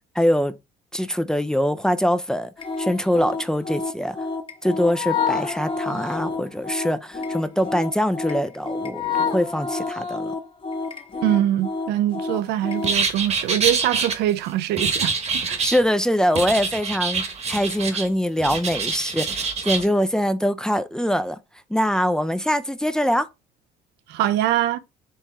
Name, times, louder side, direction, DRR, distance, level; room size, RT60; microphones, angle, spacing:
voice 1, 0.2-0.5 0.9-2.5 2.8-4.2 4.6-10.3 15.6-21.4 21.7-23.3, equal, 5° left, 0.4 m, -23 dB
sound 1, 2.6-12.9, left 4 dB, 30° left, 1.1 m, -29 dB
voice 2, 11.2-15.1 15.5-15.7 24.1-24.8, right 12 dB, 85° right, 0.5 m, -23 dB
sound 2, 12.8-14.1 14.8-15.8 16.4-18.1 18.4-19.8, right 5 dB, 40° right, 1.1 m, -25 dB
4.6 x 2.9 x 3.4 m
cardioid pair, 110°, 17 cm